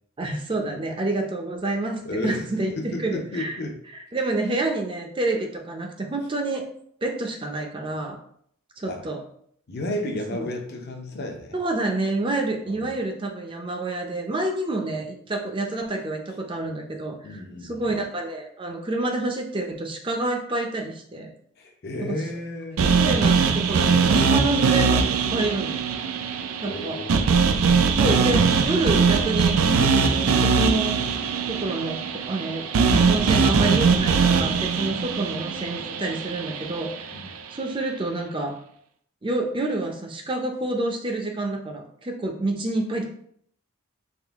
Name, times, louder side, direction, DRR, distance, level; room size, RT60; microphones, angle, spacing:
voice 1, 0.2-3.6 3.9-6.6 7.0-8.2 8.8-9.2 10.3-10.5 11.5-21.3 22.1-22.2 22.9-25.7 26.6-27.0 28.0-29.6 29.9-31.0 31.5-32.7 33.1-38.6 39.2-43.1, right 2 dB, 25° right, 2 dB, 0.5 m, -28 dB
voice 2, 2.0-2.5 2.8-3.8 8.9-9.0 9.7-11.6 12.6-12.9 17.2-17.9 21.6-23.5 26.6-27.4 37.1-37.3, left 1 dB, 50° left, 3 dB, 0.6 m, -33 dB
sound 1, 22.8-36.9, right 5 dB, 80° right, 0.4 m, -21 dB
3.7 x 2.5 x 3.5 m, 0.65 s
head